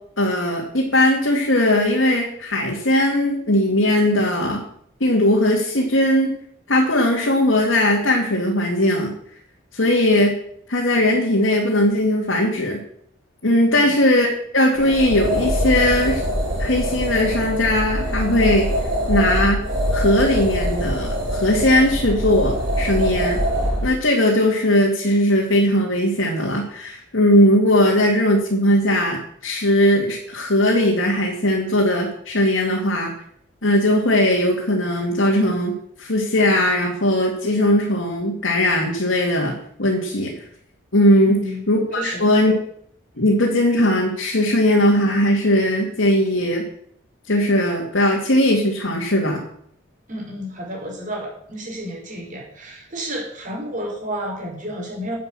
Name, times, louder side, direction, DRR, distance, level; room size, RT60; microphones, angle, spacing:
voice 1, 0.2-4.6 5.0-6.3 6.7-9.1 9.7-10.4 10.7-12.8 13.4-16.2 16.6-18.7 19.1-19.6 19.9-23.4 23.8-33.1 33.6-39.5 39.8-40.4 40.9-41.4 41.7-42.5 43.2-46.7 47.3-49.4, left 1 dB, 75° left, -2 dB, 2.6 m, -19 dB
sound 1, 14.7-23.9, equal, 80° right, 4.2 m, -23 dB
voice 2, 41.2-41.6 41.9-42.3 50.1-55.2, equal, 40° right, -1 dB, 4.8 m, -31 dB
10.5 x 8.6 x 7.8 m, 0.66 s
head